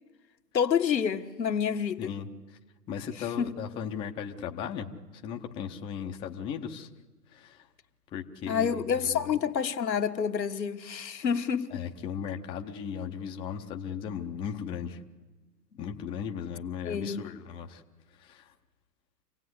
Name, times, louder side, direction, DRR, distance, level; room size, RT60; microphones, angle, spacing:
voice 1, 0.5-2.1 3.2-3.5 8.5-11.9 16.8-17.2, left 7 dB, 85° left, 1.6 m, -28 dB
voice 2, 2.0-2.3 2.9-4.9 5.1-6.9 7.3-7.6 8.1-9.3 11.7-15.0 15.8-17.8 18.2-18.5, left 7 dB, 10° left, 0.7 m, -37 dB
26.0 x 17.0 x 9.6 m
hypercardioid pair, 140°, 49 cm